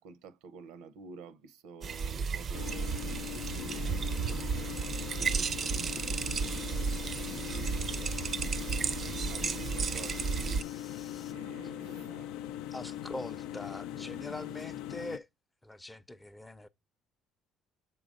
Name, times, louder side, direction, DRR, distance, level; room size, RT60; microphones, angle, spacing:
voice 1, 0.0-4.7 5.1-6.9 7.2-7.9 8.4-10.6 11.3-12.6, right 4 dB, 85° right, 0.6 m, -49 dB
sound 1, 1.8-10.6, right 6 dB, 40° right, 0.4 m, -33 dB
sound 2, 2.5-15.2, left 12 dB, 80° left, 0.3 m, -41 dB
sound 3, 6.2-11.3, left 6 dB, 45° left, 0.7 m, -53 dB
voice 2, 12.7-15.3 15.6-16.7, left 1 dB, 10° left, 0.5 m, -43 dB
6.9 x 3.8 x 5.0 m
cardioid pair, 100°, 0 cm